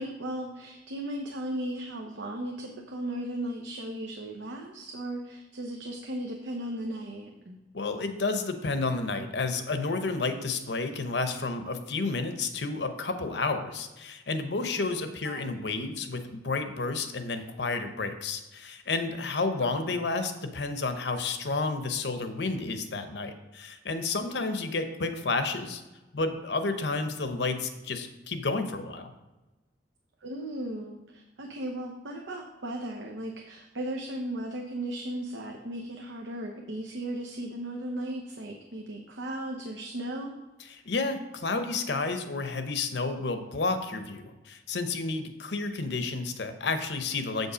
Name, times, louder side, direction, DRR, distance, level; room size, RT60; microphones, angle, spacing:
voice 1, 0.0-7.6 15.2-15.4 19.6-19.8 30.2-40.3, right 1 dB, 90° right, 1 dB, 0.8 m, -36 dB
voice 2, 7.7-25.8 26.1-29.1 40.7-47.5, left 3 dB, 70° left, 8 dB, 0.8 m, -31 dB
7.5 x 5.4 x 5.0 m, 1.1 s
head